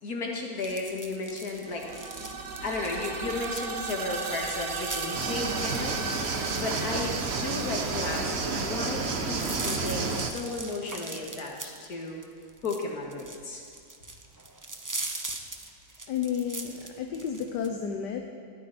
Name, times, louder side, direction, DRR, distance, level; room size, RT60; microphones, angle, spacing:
voice 1, 0.0-1.9 2.6-6.0 6.6-12.2 12.6-13.6, left 3 dB, 55° left, -1 dB, 2.6 m, -34 dB
sound 1, 0.6-17.7, right 2 dB, 20° right, 0.4 m, -41 dB
sound 2, 1.6-9.4, right 4 dB, 65° right, 1.6 m, -37 dB
sound 3, 5.1-10.3, right 4 dB, 40° right, 1.1 m, -30 dB
voice 2, 16.1-18.3, left 7 dB, 70° left, 4 dB, 1.5 m, -32 dB
20.0 x 14.0 x 4.4 m, 2.3 s
omnidirectional pair, 1.9 m